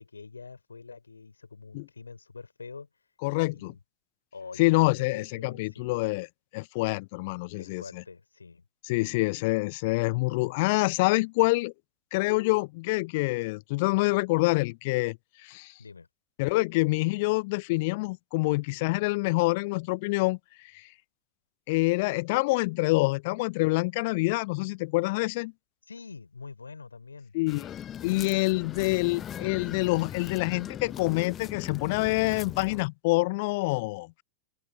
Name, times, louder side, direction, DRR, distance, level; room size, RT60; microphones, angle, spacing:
voice 1, 0.0-2.9 3.3-3.8 4.3-6.0 7.6-8.6 15.8-16.1 25.9-27.3, left 4 dB, 75° left, 3.5 m, -45 dB
voice 2, 3.2-3.7 4.6-6.3 6.5-8.0 8.8-11.7 12.1-15.2 15.4-15.7 16.4-20.9 21.7-25.5 27.3-27.7 28.0-34.2, left 24 dB, 50° left, 0.4 m, -26 dB
sound 1, 27.5-32.9, left 10 dB, 25° left, 1.1 m, -40 dB
open air
figure-of-eight pair, 90°, 0 cm